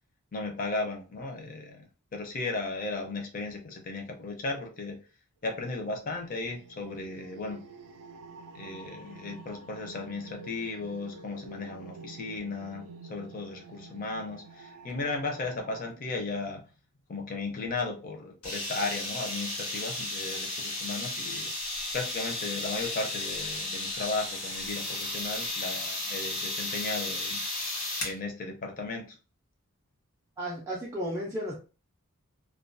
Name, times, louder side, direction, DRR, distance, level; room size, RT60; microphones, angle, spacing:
voice 1, 0.3-1.8 2.1-5.0 5.4-7.6 8.5-12.8 13.1-16.6 17.1-21.5 21.9-27.4 28.0-29.2, left 3 dB, 40° left, 3 dB, 0.5 m, -35 dB
sound 1, 5.7-15.9, right 4 dB, 90° right, 0.3 m, -49 dB
sound 2, 18.4-28.2, left 2 dB, 85° left, 1.2 m, -34 dB
voice 2, 30.4-31.6, equal, 15° right, -6 dB, 0.4 m, -33 dB
2.3 x 2.2 x 2.5 m, 0.34 s
head